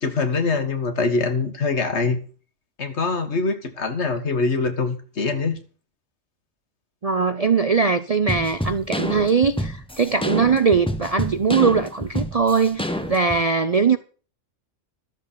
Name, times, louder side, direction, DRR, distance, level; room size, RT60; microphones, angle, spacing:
voice 1, 0.0-2.2 2.8-5.6, left 4 dB, 60° left, 1.8 m, -23 dB
voice 2, 7.0-14.0, right 5 dB, 40° right, 0.6 m, -20 dB
sound 1, 8.3-13.4, equal, 5° left, 1.0 m, -28 dB
12.5 x 7.4 x 7.1 m
omnidirectional pair, 1.3 m